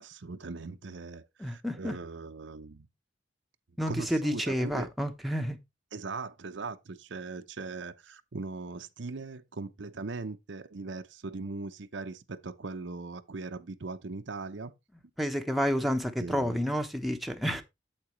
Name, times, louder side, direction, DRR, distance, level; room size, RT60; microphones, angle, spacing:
voice 1, 0.0-2.9 3.9-4.9 5.9-14.7 16.2-16.6, right 3 dB, 75° right, 0.7 m, -40 dB
voice 2, 1.4-2.0 3.8-5.6 15.2-17.6, equal, ahead, 0.9 m, -30 dB
8.7 x 8.1 x 3.1 m
head